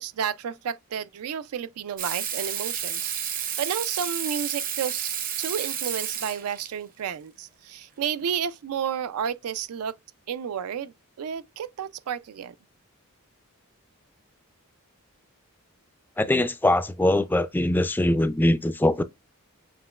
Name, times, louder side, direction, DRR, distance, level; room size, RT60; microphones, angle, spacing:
voice 1, 0.0-9.9 10.3-10.9 11.2-12.5, right 8 dB, 80° right, 0.4 m, -31 dB
Water tap faucet / Sink (filling or washing), 2.0-6.7 8.2-8.3, right 9 dB, 40° right, 0.7 m, -31 dB
voice 2, 16.2-19.0, left 1 dB, 10° left, 0.3 m, -22 dB
7.1 x 2.9 x 2.3 m
head